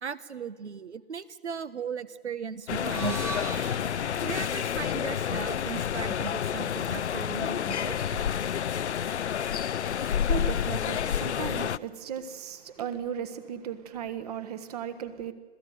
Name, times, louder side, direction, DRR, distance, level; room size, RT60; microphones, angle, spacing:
voice 1, 0.0-3.5 4.2-8.2, right 6 dB, 80° right, 1.4 m, -37 dB
sound 1, 2.7-11.8, left 9 dB, 80° left, 0.7 m, -29 dB
sound 2, 2.8-7.0, right 2 dB, 5° right, 1.1 m, -42 dB
voice 2, 9.7-15.3, right 8 dB, 35° right, 1.6 m, -36 dB
26.0 x 16.5 x 9.4 m
hypercardioid pair, 150°, 34 cm